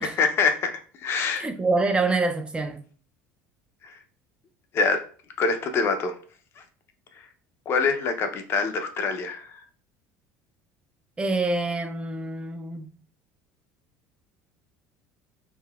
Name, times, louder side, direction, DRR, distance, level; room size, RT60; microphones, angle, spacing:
voice 1, 0.0-0.7 1.0-1.4 3.8-4.0 4.7-5.0 5.4-6.1 7.7-9.6, left 4 dB, 45° left, 0.5 m, -25 dB
voice 2, 1.4-2.8 11.2-12.9, right 3 dB, 20° right, 0.3 m, -26 dB
3.4 x 2.1 x 2.3 m
supercardioid pair, 100°, 6 cm